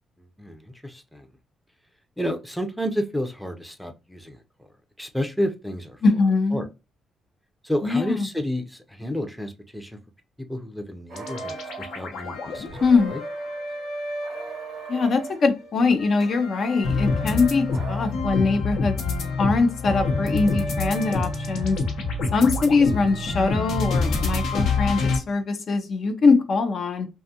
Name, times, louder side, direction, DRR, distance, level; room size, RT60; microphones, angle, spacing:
voice 1, 0.4-1.3 2.2-4.4 5.0-6.0 6.5-6.7 7.6-10.0 10.5-11.6 11.9-12.8 13.1-13.2, equal, ahead, 0.5 m, -30 dB
voice 2, 6.0-6.7 7.8-8.3 12.8-13.2 14.9-19.0 19.4-21.8 22.3-27.1, left 4 dB, 55° left, 0.5 m, -22 dB
sound 1, 11.1-15.2 15.6-25.2, left 3 dB, 75° left, 0.8 m, -27 dB
sound 2, 11.1-12.1 12.7-13.6 14.2-15.5 16.6-18.1, right 6 dB, 60° right, 0.4 m, -40 dB
2.6 x 2.3 x 2.6 m
cardioid pair, 90°, 0 cm